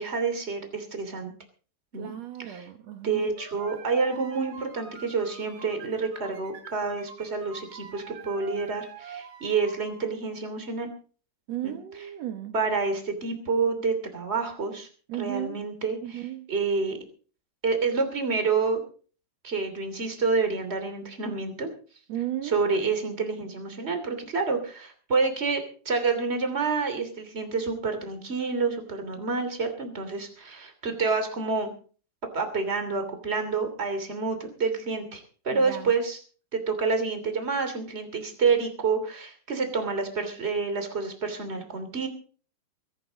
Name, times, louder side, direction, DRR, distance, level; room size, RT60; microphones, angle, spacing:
voice 1, 0.0-1.3 1.9-2.1 2.5-2.7 3.0-10.9 11.6-11.8 12.5-14.9 15.2-17.0 17.6-18.8 19.4-21.7 22.4-31.7 32.3-36.2 36.5-42.1, right 4 dB, 20° right, 7 dB, 2.3 m, -28 dB
voice 2, 1.9-3.2 11.5-12.5 15.1-15.6 16.0-16.5 22.1-22.8 35.5-35.9, right 12 dB, 80° right, 6 dB, 1.5 m, -35 dB
sound 1, 3.4-10.0, right 6 dB, 60° right, 4.7 m, -46 dB
22.0 x 11.5 x 4.0 m, 0.42 s
omnidirectional pair, 4.8 m